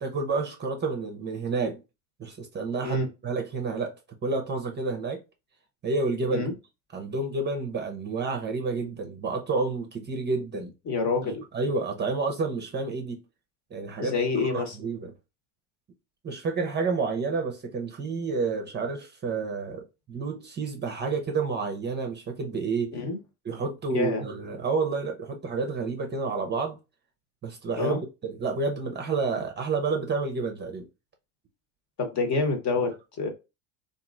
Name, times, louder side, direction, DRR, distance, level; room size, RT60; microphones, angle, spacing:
voice 1, 0.0-1.8 2.2-3.9 4.2-5.2 5.8-6.5 6.9-10.7 11.2-13.2 13.7-14.2 14.5-15.1 16.2-23.0 23.4-26.8 27.4-30.9, right 4 dB, 25° right, 0.6 m, -29 dB
voice 2, 10.8-11.4 14.0-14.8 22.9-23.2 23.9-24.2 27.8-28.0 32.0-33.3, left 3 dB, 40° left, 1.1 m, -27 dB
2.9 x 2.5 x 2.4 m
hypercardioid pair, 95°, 43 cm